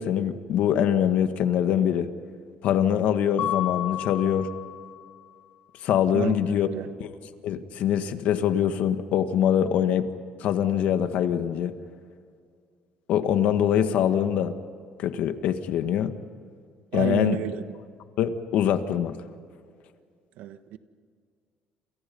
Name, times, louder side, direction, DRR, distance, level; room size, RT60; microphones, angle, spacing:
voice 1, 0.0-2.1 2.6-4.5 5.8-6.7 7.0-7.1 7.4-10.1 10.4-11.7 13.1-14.5 15.0-16.1 16.9-17.4 18.2-19.1, left 9 dB, 65° left, 1.7 m, -23 dB
Mallet percussion, 3.4-5.2, left 13 dB, 50° left, 0.6 m, -31 dB
voice 2, 6.1-7.0 16.9-17.8 20.4-20.8, right 11 dB, 75° right, 1.4 m, -31 dB
29.0 x 28.0 x 5.5 m
cardioid pair, 145°, 3 cm